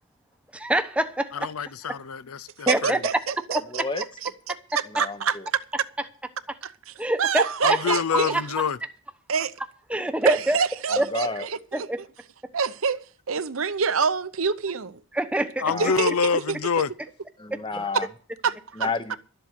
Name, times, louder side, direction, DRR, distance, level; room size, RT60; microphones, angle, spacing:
voice 1, 0.5-1.5 2.7-3.0 3.5-3.6 7.0-7.8 8.3-8.6 9.9-10.6 11.0-11.1 11.7-12.0 15.1-15.6, right 1 dB, 5° right, 0.9 m, -25 dB
voice 2, 1.3-3.0 7.6-8.8 15.6-16.9, left 6 dB, 80° left, 0.6 m, -26 dB
voice 3, 2.7-4.3 4.8-5.4 6.6-6.9 7.2-8.3 9.3-9.5 10.3-11.9 12.5-15.0 15.8-16.1 16.5-16.6 17.9-18.0 18.4-18.9, right 5 dB, 70° right, 0.8 m, -26 dB
voice 4, 3.7-4.0 4.9-5.5 10.9-11.5 15.7-16.0 17.4-18.1 18.8-19.2, left 3 dB, 20° left, 0.9 m, -31 dB
12.5 x 7.8 x 8.1 m
head